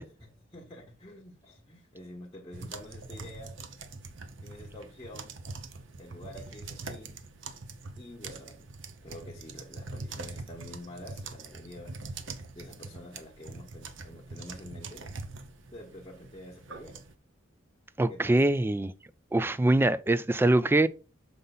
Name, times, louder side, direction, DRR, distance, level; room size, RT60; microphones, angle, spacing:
voice 1, 0.2-3.8 4.4-5.3 6.0-7.2 8.0-15.1 15.7-17.0 18.1-18.4, left 1 dB, 20° left, 1.2 m, -48 dB
sound 1, 2.5-17.1, right 3 dB, 65° right, 0.8 m, -43 dB
voice 2, 18.0-18.9 19.3-20.9, right 2 dB, 10° right, 0.3 m, -23 dB
6.6 x 5.4 x 4.0 m
head